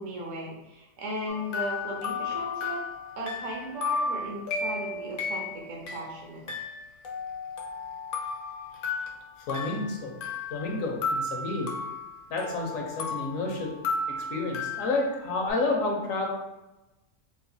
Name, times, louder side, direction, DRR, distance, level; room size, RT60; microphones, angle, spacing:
voice 1, 0.0-2.8 3.2-6.4, equal, 70° right, -2 dB, 1.2 m, -36 dB
sound 1, 1.3-6.0 6.5-10.8 11.0-15.5, left 3 dB, 60° left, 0.6 m, -34 dB
voice 2, 9.5-10.1 10.5-11.7 12.3-13.7 14.1-16.3, left 3 dB, 80° left, 0 dB, 1.1 m, -30 dB
3.9 x 2.4 x 2.7 m, 0.99 s
omnidirectional pair, 1.4 m